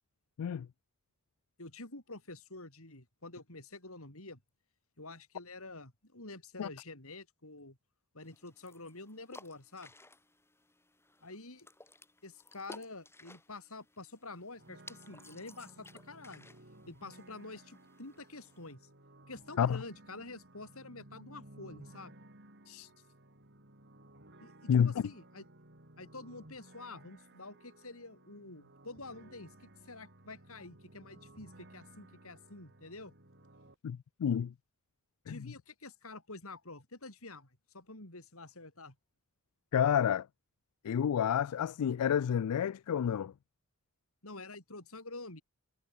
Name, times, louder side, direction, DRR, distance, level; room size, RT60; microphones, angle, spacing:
voice 1, 1.6-4.4 5.0-7.8 8.1-9.9 11.2-11.7 12.2-16.5 16.9-18.8 19.3-22.1 24.4-25.5 26.0-33.1 35.3-39.0 44.2-45.4, left 2 dB, 65° left, 5.5 m, -48 dB
sound 1, 8.2-18.7, left 2 dB, 10° left, 7.0 m, -57 dB
sound 2, 14.6-33.7, right 1 dB, 50° right, 4.4 m, -57 dB
voice 2, 33.8-34.5 35.3-35.4 39.7-40.3 40.8-43.3, left 8 dB, 85° left, 0.4 m, -29 dB
head